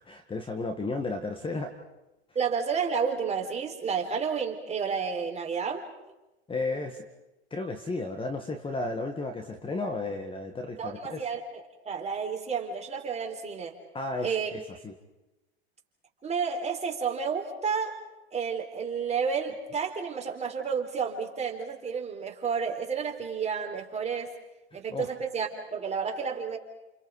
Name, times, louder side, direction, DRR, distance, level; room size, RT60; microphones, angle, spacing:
voice 1, 0.0-1.7 6.5-7.0 7.5-11.3 13.9-14.9 24.9-25.1, left 3 dB, 15° left, 5 dB, 1.8 m, -33 dB
voice 2, 2.3-5.9 10.8-13.8 14.2-14.5 16.2-18.0 18.3-24.3 24.7-26.6, right 6 dB, 20° right, 1 dB, 4.1 m, -31 dB
29.5 x 29.0 x 4.9 m, 0.99 s
hypercardioid pair, 100°, 33 cm